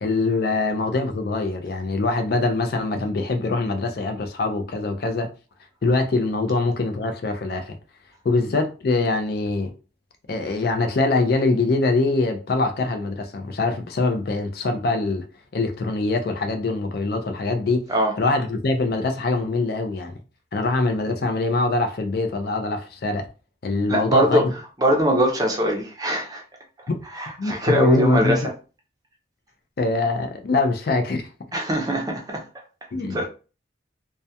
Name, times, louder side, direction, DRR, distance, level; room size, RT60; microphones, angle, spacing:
voice 1, 0.0-5.3 5.8-7.8 8.2-9.7 10.3-15.2 15.5-17.9 18.2-20.1 20.5-23.3 23.6-24.4 26.9-27.0 27.4-28.5 29.8-31.3 32.9-33.2, left 3 dB, 55° left, 0.4 m, -23 dB
voice 2, 23.9-24.5 24.8-26.4 27.0-28.5 31.5-32.4 33.1-33.3, equal, 20° right, 0.5 m, -22 dB
2.3 x 2.1 x 2.7 m
head